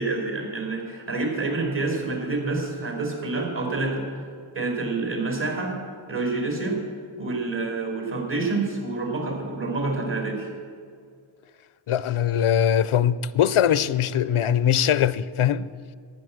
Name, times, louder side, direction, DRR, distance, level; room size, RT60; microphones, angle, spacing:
voice 1, 0.0-4.0 4.6-5.8 6.1-6.8 7.2-10.5, right 3 dB, 65° right, 5.2 m, -27 dB
voice 2, 11.9-15.7, left 9 dB, 80° left, 0.6 m, -21 dB
14.0 x 10.5 x 7.8 m
cardioid pair, 45°, 49 cm